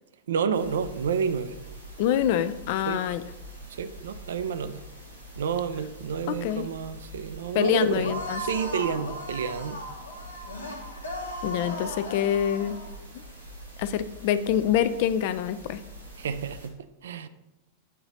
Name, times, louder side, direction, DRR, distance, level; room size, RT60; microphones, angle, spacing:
voice 1, 0.3-1.6 2.9-3.1 3.7-4.8 5.4-9.8 16.2-17.3, right 6 dB, 65° right, 12 dB, 0.4 m, -30 dB
sound 1, 0.5-16.7, right 1 dB, 85° right, 1.3 m, -45 dB
voice 2, 2.0-3.2 6.4-6.7 7.5-8.4 11.4-12.8 13.8-15.8, left 10 dB, 50° left, 13 dB, 0.3 m, -25 dB
sound 2, 8.0-12.9, equal, 80° left, 1.0 m, -37 dB
8.6 x 3.9 x 3.9 m, 0.98 s
figure-of-eight pair, 90°, 0 cm